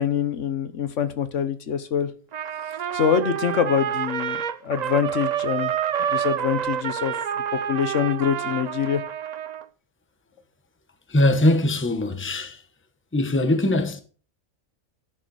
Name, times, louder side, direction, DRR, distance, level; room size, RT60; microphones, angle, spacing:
voice 1, 0.0-2.1 2.9-5.7 6.1-7.1 7.5-9.0, left 8 dB, 70° left, 1.2 m, -25 dB
Trumpet, 2.3-9.7, right 9 dB, 65° right, 0.4 m, -28 dB
voice 2, 11.1-12.6 13.1-14.0, left 1 dB, 10° left, 0.9 m, -21 dB
11.5 x 6.5 x 4.8 m
omnidirectional pair, 1.3 m